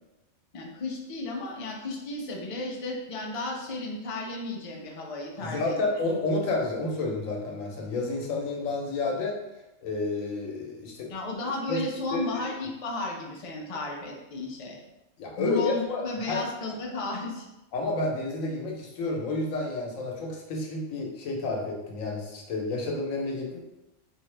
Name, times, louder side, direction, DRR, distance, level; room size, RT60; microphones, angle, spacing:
voice 1, 0.5-5.8 11.1-14.8 15.4-17.5, left 2 dB, 40° left, -1 dB, 0.5 m, -34 dB
voice 2, 5.4-9.4 9.8-11.1 11.7-11.8 12.1-12.4 15.2-16.4 17.7-23.6, left 2 dB, 90° left, 0 dB, 1.2 m, -30 dB
3.7 x 2.7 x 3.2 m, 0.97 s
omnidirectional pair, 1.3 m